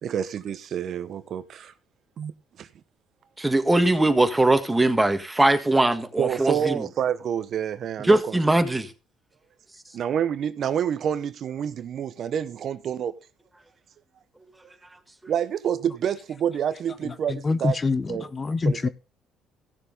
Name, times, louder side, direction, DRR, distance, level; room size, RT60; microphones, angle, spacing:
voice 1, 0.0-1.7 2.2-2.3 2.6-2.7 6.2-8.4 9.9-13.1 15.3-17.8 18.1-18.3 18.6-18.9, right 9 dB, 55° right, 0.8 m, -28 dB
voice 2, 3.4-6.9 8.0-8.9, right 2 dB, 10° right, 1.6 m, -21 dB
voice 3, 17.0-18.9, left 3 dB, 30° left, 0.7 m, -26 dB
15.0 x 6.9 x 4.0 m
supercardioid pair, 80°, 0 cm